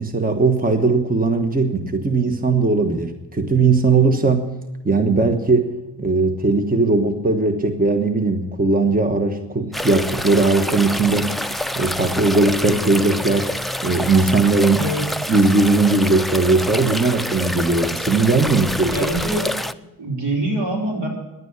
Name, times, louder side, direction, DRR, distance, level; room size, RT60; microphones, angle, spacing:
voice 1, 0.0-4.5 4.8-5.7 6.0-11.3 11.8-13.5 13.8-14.9 15.3-19.0, right 3 dB, 20° right, 6 dB, 1.2 m, -18 dB
sound 1, 9.7-19.7, equal, ahead, 0.4 m, -27 dB
voice 2, 18.9-19.5 20.0-21.1, right 1 dB, 80° right, -2 dB, 4.9 m, -24 dB
11.0 x 9.2 x 9.9 m, 1.0 s
cardioid pair, 90°, 41 cm